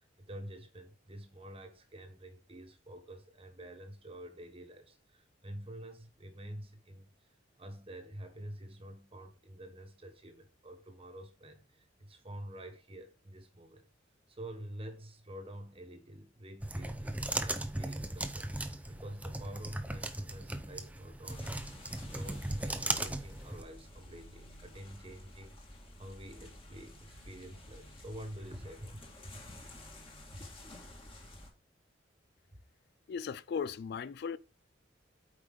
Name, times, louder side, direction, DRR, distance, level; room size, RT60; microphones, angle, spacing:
voice 1, 0.2-7.3 7.6-13.8 14.3-21.5 21.7-25.6 26.0-29.9 30.3-30.5, right 1 dB, 30° right, 1.3 m, -48 dB
sound 1, 16.6-23.6, right 1 dB, 10° right, 0.6 m, -37 dB
sound 2, 21.2-31.5, left 1 dB, 30° left, 1.9 m, -52 dB
voice 2, 33.1-34.4, left 6 dB, 60° left, 0.3 m, -37 dB
8.3 x 5.0 x 3.7 m
head